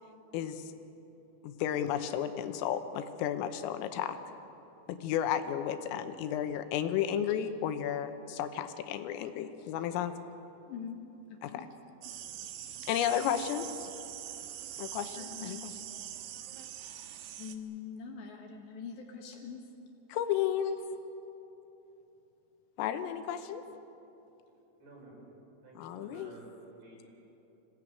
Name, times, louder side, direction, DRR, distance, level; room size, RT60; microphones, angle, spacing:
voice 1, 0.3-0.7 1.4-4.2 4.9-10.1 11.4-11.7 12.8-13.9 14.8-15.9 20.1-20.8 22.8-23.6 25.8-26.3, left 10 dB, 80° left, 8 dB, 3.6 m, -33 dB
voice 2, 11.3-11.6 15.2-15.7 17.4-19.6, left 7 dB, 65° left, 2 dB, 3.4 m, -43 dB
sound 1, 12.0-17.6, right 11 dB, 75° right, 3.3 m, -43 dB
voice 3, 24.8-25.2 25.6-27.1, right 2 dB, 55° right, -2 dB, 7.5 m, -52 dB
26.0 x 17.5 x 9.1 m, 3.0 s
omnidirectional pair, 5.9 m